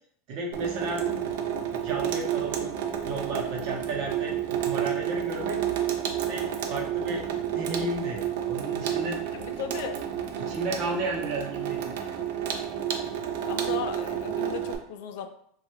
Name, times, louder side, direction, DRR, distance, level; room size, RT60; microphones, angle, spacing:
voice 1, 0.3-1.0 1.8-2.7 3.0-5.6 6.3-9.2 10.4-12.1, right 2 dB, 50° right, 0 dB, 0.8 m, -33 dB
Water tap faucet / Sink (filling or washing), 0.5-14.8, right 10 dB, 75° right, 0.5 m, -30 dB
voice 2, 9.3-10.0 13.5-15.3, left 7 dB, 70° left, 8 dB, 0.4 m, -36 dB
3.2 x 2.3 x 3.0 m, 0.65 s
supercardioid pair, 150°, 0 cm